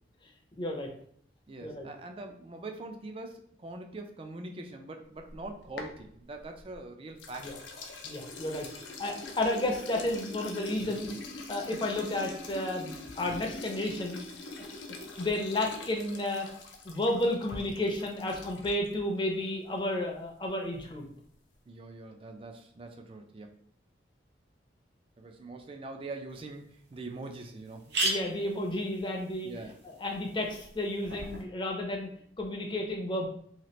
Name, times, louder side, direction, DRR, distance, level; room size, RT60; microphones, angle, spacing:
voice 1, 0.6-0.9 1.6-1.9 7.4-7.5 8.0-8.7 9.0-11.2 11.5-14.2 15.2-16.5 16.8-21.1 28.0-29.5 29.8-32.1 32.4-33.3, left 1 dB, 25° left, 1 dB, 0.5 m, -32 dB
voice 2, 1.5-7.5 10.9-11.0 21.7-23.6 25.2-28.0 29.4-29.8, right 2 dB, 30° right, 5 dB, 0.3 m, -43 dB
sound 1, 5.2-6.8 7.2-18.9, left 3 dB, 85° left, 0.5 m, -44 dB
sound 2, 26.3-26.4 26.9-27.0 27.2-27.3 27.6-31.4, right 2 dB, 65° right, 0.6 m, -37 dB
2.8 x 2.4 x 3.0 m, 0.62 s
head